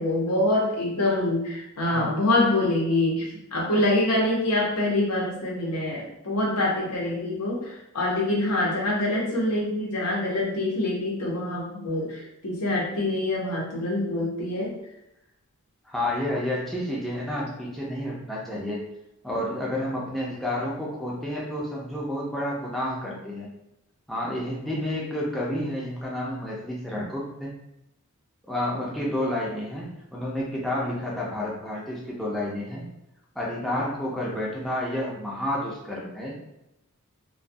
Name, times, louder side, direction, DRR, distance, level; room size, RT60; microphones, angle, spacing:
voice 1, 0.0-14.7, left 1 dB, 90° left, -3 dB, 0.8 m, -25 dB
voice 2, 15.9-18.9 19.2-23.5 24.1-27.5 28.5-32.9 33.4-36.4, left 1 dB, ahead, -5 dB, 0.5 m, -30 dB
2.3 x 2.3 x 2.6 m, 0.86 s
head